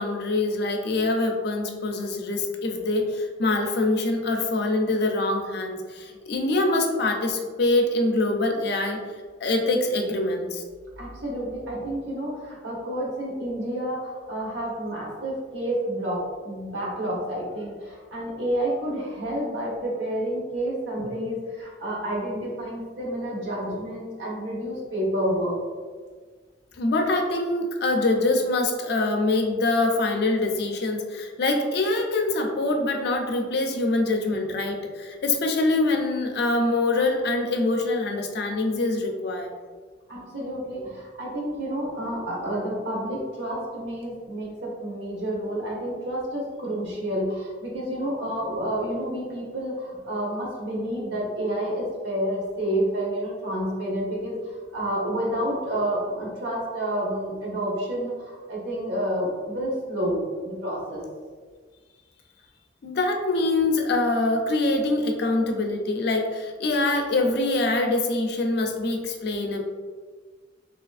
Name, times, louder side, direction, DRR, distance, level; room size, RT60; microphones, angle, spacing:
voice 1, 0.0-9.0 9.4-10.6 26.8-39.5 62.8-69.6, left 2 dB, 60° left, 3 dB, 0.4 m, -24 dB
voice 2, 11.0-25.6 40.1-61.0, right 1 dB, 85° right, -4 dB, 1.0 m, -29 dB
3.2 x 2.8 x 2.4 m, 1.5 s
head